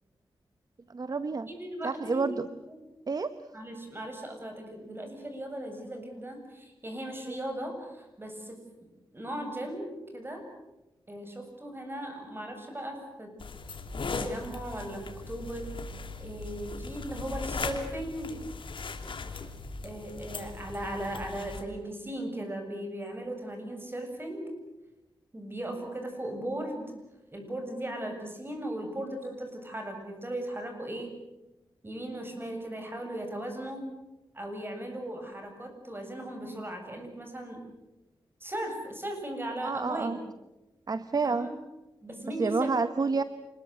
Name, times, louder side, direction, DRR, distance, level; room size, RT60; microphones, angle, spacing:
voice 1, 0.9-1.5 1.8-2.5 3.1-3.3 39.6-40.2 40.9-41.5 42.4-43.2, right 4 dB, 45° right, 11 dB, 1.0 m, -29 dB
voice 2, 1.5-2.8 3.5-8.6 9.1-10.4 11.1-13.3 14.0-15.7 16.2-18.4 19.8-24.5 25.3-26.9 27.3-31.1 31.8-33.8 34.3-37.6 38.4-40.2 41.2-41.5 42.0-42.7 43.1-43.2, right 1 dB, 25° right, 4 dB, 7.6 m, -37 dB
sound 1, 13.4-21.6, left 4 dB, 70° left, 3.0 m, -38 dB
27.5 x 21.0 x 7.9 m, 1.0 s
wide cardioid pair, 85°, 9 cm